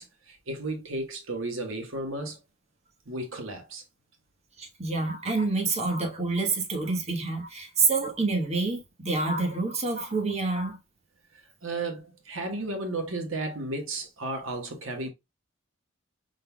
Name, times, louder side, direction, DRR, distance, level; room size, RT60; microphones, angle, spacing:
voice 1, 0.0-2.4 3.1-3.8 11.6-15.1, right 2 dB, 85° right, 1.4 m, -34 dB
voice 2, 4.6-10.8, right 3 dB, 35° right, 1.3 m, -27 dB
5.3 x 3.9 x 2.2 m
head